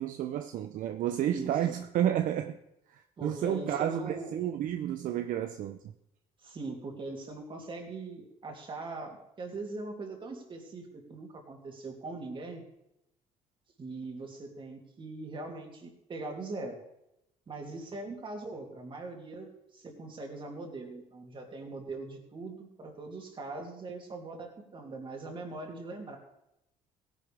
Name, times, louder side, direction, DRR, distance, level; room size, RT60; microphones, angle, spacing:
voice 1, 0.0-2.6 2.9-5.8, right 11 dB, 60° right, 0.6 m, -31 dB
voice 2, 1.2-1.8 3.2-4.3 6.4-12.6 13.8-16.8 17.5-26.2, right 3 dB, 35° right, 2.8 m, -41 dB
16.5 x 10.5 x 3.5 m
cardioid pair, 110°, 15 cm